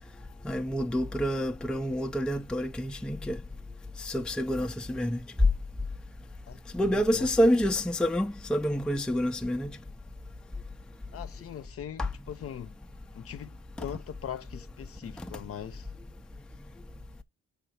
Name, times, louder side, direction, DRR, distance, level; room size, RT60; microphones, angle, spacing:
voice 1, 0.4-3.4 4.0-5.2 6.7-9.7 12.0-12.1, equal, 5° left, 0.5 m, -28 dB
voice 2, 6.5-7.3 11.1-12.7 13.1-15.9, left 9 dB, 50° left, 0.7 m, -41 dB
4.8 x 3.7 x 5.7 m
cardioid pair, 90°, 30 cm